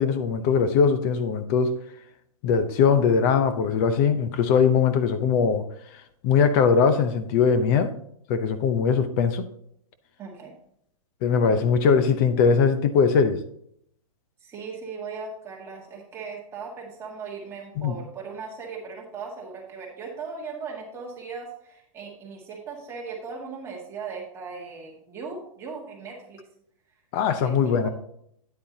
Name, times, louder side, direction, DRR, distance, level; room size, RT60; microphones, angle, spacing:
voice 1, 0.0-1.8 2.4-5.6 6.2-7.9 8.3-9.5 11.2-13.4 17.8-17.9 27.1-27.9, left 6 dB, 30° left, 0.7 m, -21 dB
voice 2, 10.2-10.5 14.4-26.4 27.4-27.9, right 5 dB, 15° right, 1.9 m, -38 dB
9.5 x 8.5 x 2.8 m
hypercardioid pair, 160°, 18 cm